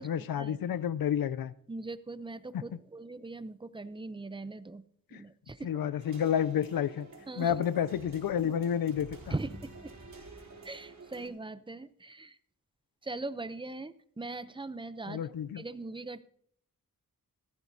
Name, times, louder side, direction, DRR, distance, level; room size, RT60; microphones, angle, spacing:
voice 1, 0.0-1.5 5.1-5.2 5.6-7.1 7.4-9.3 15.1-15.6, left 9 dB, 80° left, 0.5 m, -30 dB
voice 2, 1.7-4.8 5.1-5.7 7.3-7.6 9.3-9.9 10.6-12.4 13.0-15.3 15.5-16.2, right 2 dB, 15° right, 0.6 m, -40 dB
sound 1, 6.0-11.3, right 3 dB, 55° right, 3.1 m, -50 dB
15.5 x 14.0 x 2.7 m
wide cardioid pair, 75°, 35 cm